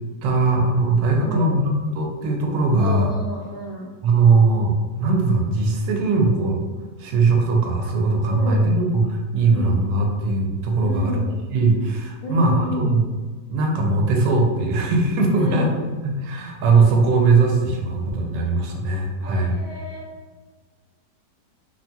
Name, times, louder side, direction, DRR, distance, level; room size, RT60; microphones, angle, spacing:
voice 1, 0.2-3.1 4.0-6.6 7.0-11.2 11.5-13.0 13.5-15.7 16.0-19.6, right 3 dB, 80° right, 1 dB, 1.2 m, -20 dB
voice 2, 1.2-1.6 2.8-3.9 8.2-8.8 9.4-9.9 10.8-11.4 12.2-13.0 15.3-15.7 19.2-20.0, left 1 dB, 70° left, -4 dB, 1.0 m, -31 dB
3.0 x 2.7 x 2.2 m, 1.4 s
omnidirectional pair, 1.9 m